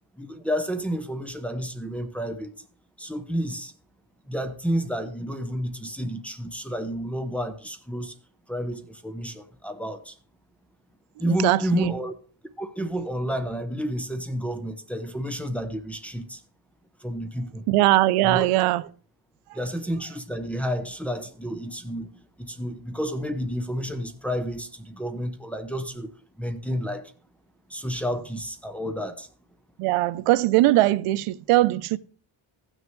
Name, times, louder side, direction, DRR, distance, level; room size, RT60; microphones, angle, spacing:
voice 1, 0.2-2.6 3.0-3.7 4.3-8.1 8.5-10.1 11.2-12.1 12.6-16.4 17.0-17.6 18.2-18.5 19.5-22.1 22.4-26.1 26.4-27.1 27.7-29.3, equal, 5° left, 0.6 m, -30 dB
voice 2, 11.3-11.9 17.7-18.8 29.8-32.0, right 17 dB, 90° right, 0.6 m, -20 dB
15.5 x 6.3 x 3.1 m
cardioid pair, 145°, 50 cm